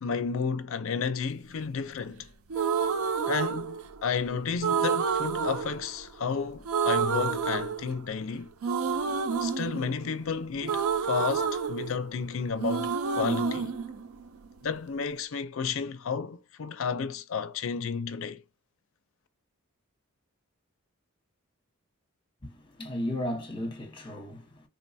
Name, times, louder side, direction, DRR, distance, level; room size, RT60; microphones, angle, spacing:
voice 1, 0.0-2.3 3.3-8.5 9.4-13.7 14.6-18.4, left 5 dB, 65° left, 0.4 m, -32 dB
sound 1, 2.5-4.2 4.6-6.4 6.6-8.2 8.6-12.3 12.6-14.6, right 6 dB, 75° right, 0.5 m, -29 dB
voice 2, 22.4-24.6, left 1 dB, 20° left, 0.9 m, -35 dB
3.6 x 2.2 x 2.6 m
head